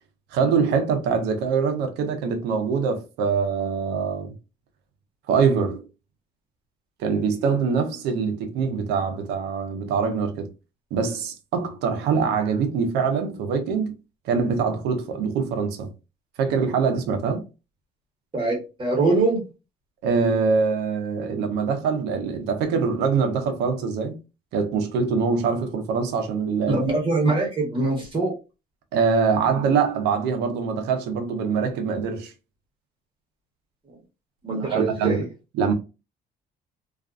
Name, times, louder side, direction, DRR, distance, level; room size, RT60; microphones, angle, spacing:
voice 1, 0.3-4.3 5.3-5.8 7.0-10.5 10.9-14.0 14.2-15.9 16.4-17.4 20.0-24.2 24.5-26.8 28.9-32.3 34.7-35.2 35.6-35.7, right 5 dB, 90° right, 0.6 m, -24 dB
voice 2, 18.3-19.4 26.7-28.3 34.4-35.2, right 3 dB, 30° right, 1.1 m, -23 dB
2.4 x 2.4 x 2.3 m
cardioid pair, 110°, 17 cm